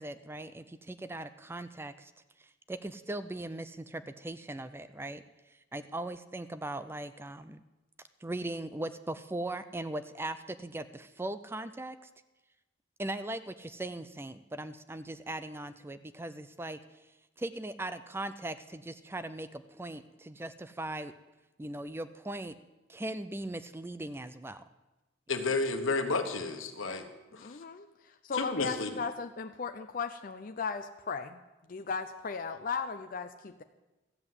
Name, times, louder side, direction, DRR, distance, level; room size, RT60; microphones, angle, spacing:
voice 1, 0.0-2.1 2.7-5.2 5.7-7.6 8.2-12.0 13.0-16.8 17.4-21.1 21.6-22.5 22.9-24.6 26.8-26.9, right 1 dB, 10° right, 12 dB, 0.4 m, -39 dB
voice 2, 25.3-27.1 27.3-27.6 28.3-29.0, left 3 dB, 85° left, 6 dB, 1.3 m, -31 dB
voice 3, 27.4-31.4 31.7-33.6, left 5 dB, 45° left, 7 dB, 0.5 m, -37 dB
14.0 x 7.7 x 8.0 m, 1.1 s
head